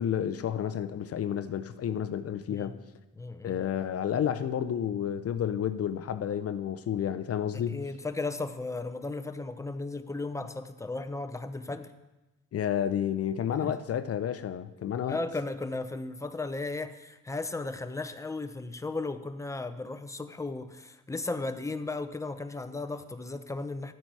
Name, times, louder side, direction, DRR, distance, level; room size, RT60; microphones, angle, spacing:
voice 1, 0.0-2.8 3.4-7.8 12.5-15.2, left 9 dB, 50° left, 0.6 m, -30 dB
voice 2, 2.5-2.8 3.2-3.6 7.5-11.9 13.6-13.7 15.1-23.9, left 3 dB, 10° left, 0.7 m, -35 dB
12.5 x 8.7 x 4.7 m
cardioid pair, 90°, 30 cm